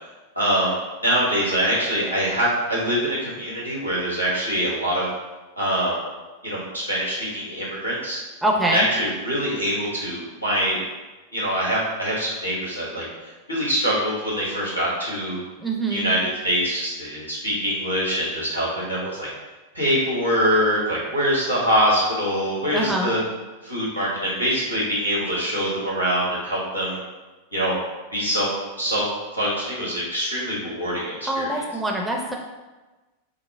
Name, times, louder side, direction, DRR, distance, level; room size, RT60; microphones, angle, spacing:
voice 1, 0.3-0.7 1.0-5.1 5.6-6.0 6.4-8.2 8.7-10.8 11.3-15.4 15.9-16.2 16.4-19.3 19.7-23.2 23.6-27.0 27.5-27.8 28.1-28.5 28.8-29.0 29.3-31.6, equal, 90° left, -7 dB, 1.4 m, -24 dB
voice 2, 8.4-8.9 15.6-16.1 22.7-23.1 31.3-32.3, right 1 dB, 5° right, 0 dB, 0.6 m, -24 dB
5.5 x 2.1 x 3.4 m, 1.2 s
figure-of-eight pair, 90°, 0 cm